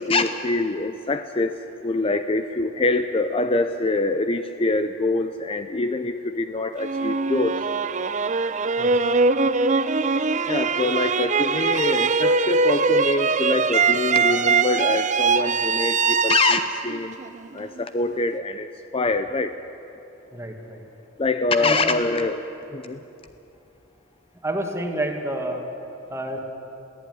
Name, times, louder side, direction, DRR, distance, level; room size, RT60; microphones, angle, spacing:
voice 1, 0.0-1.6 1.8-7.6 10.5-17.2 17.5-19.5 21.2-22.5 22.7-23.0, left 3 dB, 30° left, 9 dB, 0.6 m, -24 dB
sound 1, 6.8-17.8, right 4 dB, 35° right, 0.6 m, -22 dB
voice 2, 20.3-20.8 21.6-21.9 24.4-25.6 26.1-26.4, right 1 dB, 15° right, 3 dB, 2.1 m, -29 dB
22.0 x 15.0 x 9.4 m, 2.8 s
head